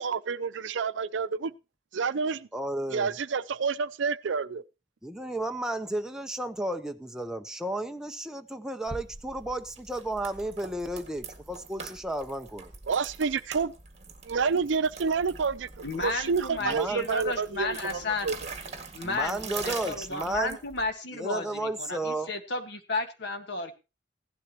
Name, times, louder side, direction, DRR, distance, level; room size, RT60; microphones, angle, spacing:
voice 1, 0.0-1.5 1.9-2.5 2.9-4.6 12.9-13.7 14.3-18.4, right 5 dB, 75° right, 0.5 m, -29 dB
voice 2, 2.5-3.1 5.0-12.7 16.6-17.1 19.0-20.6 21.1-22.3, right 1 dB, 5° right, 0.7 m, -33 dB
sound 1, 8.9-20.9, right 4 dB, 35° right, 1.8 m, -43 dB
voice 3, 15.8-18.4 18.9-23.7, left 3 dB, 65° left, 1.6 m, -33 dB
16.0 x 11.5 x 2.9 m
head